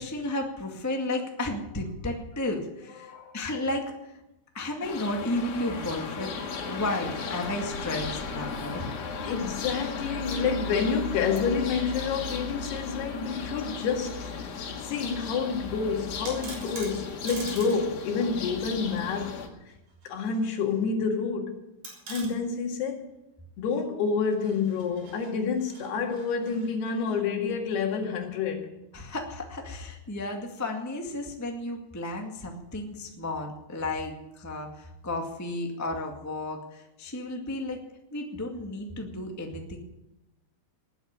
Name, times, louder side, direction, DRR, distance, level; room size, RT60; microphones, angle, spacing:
voice 1, 0.0-4.1 4.5-6.3 6.7-8.9 28.9-37.8 38.1-39.8, left 2 dB, 15° left, 0.5 m, -33 dB
voice 2, 3.0-3.4 9.0-14.3 14.8-19.4 20.1-21.6 22.1-23.1 23.6-28.8, left 5 dB, 85° left, 4.1 m, -28 dB
sound 1, 4.8-19.5, left 4 dB, 70° left, 3.7 m, -36 dB
sound 2, 16.3-17.8 18.1-18.2 19.7-20.4 20.7-20.8 21.8-22.3 24.3-27.2, right 2 dB, 50° right, 6.5 m, -44 dB
20.0 x 8.0 x 9.1 m
omnidirectional pair, 4.5 m